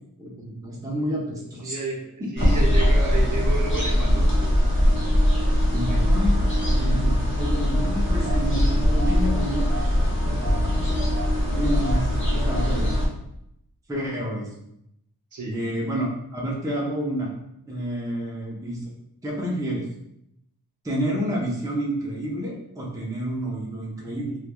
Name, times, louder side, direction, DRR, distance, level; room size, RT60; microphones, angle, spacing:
voice 1, 0.2-1.8 2.2-2.5 5.7-6.4 6.7-9.9 10.3-11.0 11.5-13.0 13.9-14.5 15.5-17.3 17.7-18.8 19.2-19.8 20.8-24.4, equal, 10° right, -3 dB, 0.5 m, -29 dB
voice 2, 1.6-4.6 5.9-6.2 15.3-15.6, right 3 dB, 50° right, -2 dB, 0.7 m, -32 dB
sound 1, 2.4-13.1, equal, 30° left, 0.6 m, -21 dB
3.2 x 2.2 x 2.2 m, 0.78 s
wide cardioid pair, 90°, 40 cm